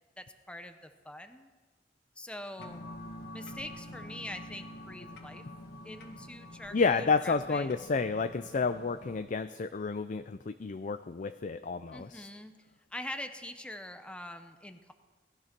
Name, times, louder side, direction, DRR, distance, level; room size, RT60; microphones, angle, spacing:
voice 1, 0.2-1.5 2.2-2.9 3.3-5.5 5.8-7.7 11.9-12.5 12.9-14.9, left 1 dB, 5° left, 7 dB, 0.8 m, -44 dB
sound 1, 2.6-9.2, left 1 dB, 60° left, 1.8 m, -47 dB
voice 2, 6.7-12.3, left 4 dB, 45° left, 10 dB, 0.5 m, -30 dB
18.5 x 12.5 x 6.0 m, 1.3 s
head